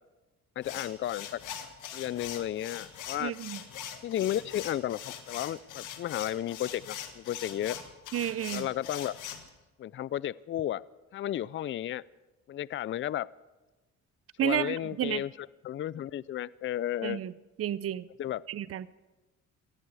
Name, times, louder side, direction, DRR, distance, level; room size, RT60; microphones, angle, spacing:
sound 1, 0.6-9.5, left 9 dB, 85° left, 1.7 m, -42 dB
voice 1, 0.6-1.4 1.9-3.3 4.0-7.8 8.5-9.1 9.8-10.8 11.1-12.0 12.5-13.3 14.4-17.2 18.2-18.4, left 12 dB, 40° left, 21 dB, 0.4 m, -33 dB
voice 2, 3.2-3.6 8.1-8.7 14.4-15.2 17.0-17.3 17.6-18.1 18.5-18.9, right 11 dB, 50° right, 17 dB, 0.6 m, -31 dB
19.0 x 14.5 x 4.8 m, 1.1 s
cardioid pair, 90°, 30 cm